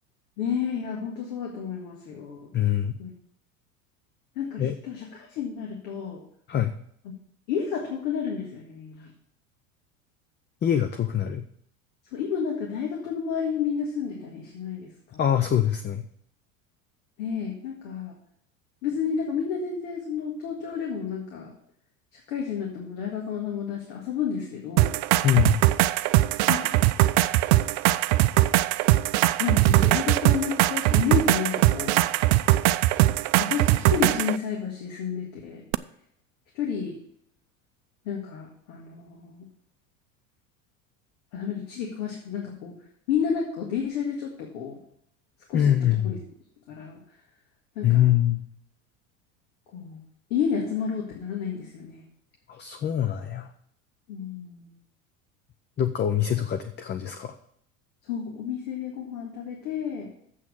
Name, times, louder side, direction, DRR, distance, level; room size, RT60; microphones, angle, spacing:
voice 1, 0.4-2.5 3.0-3.1 4.4-6.2 7.5-9.1 12.1-15.2 17.2-18.1 18.8-21.5 22.1-24.9 26.5-26.8 29.4-32.0 33.4-35.6 36.5-37.0 38.1-39.5 41.3-42.8 43.1-44.8 45.5-46.2 46.7-47.0 47.8-48.1 49.7-50.0 50.3-52.0 54.1-54.7 58.1-60.1, left 7 dB, 70° left, -1 dB, 2.0 m, -31 dB
voice 2, 2.5-3.0 4.6-4.7 6.5-6.8 10.6-11.5 15.2-16.1 25.2-25.6 45.5-46.2 47.8-48.4 52.5-53.5 55.8-57.4, left 10 dB, 25° left, 8 dB, 0.6 m, -24 dB
sound 1, 24.8-34.4 35.7-35.8, right 17 dB, 60° right, 0.5 m, -21 dB
7.5 x 6.2 x 7.3 m, 0.67 s
hypercardioid pair, 85°, 41 cm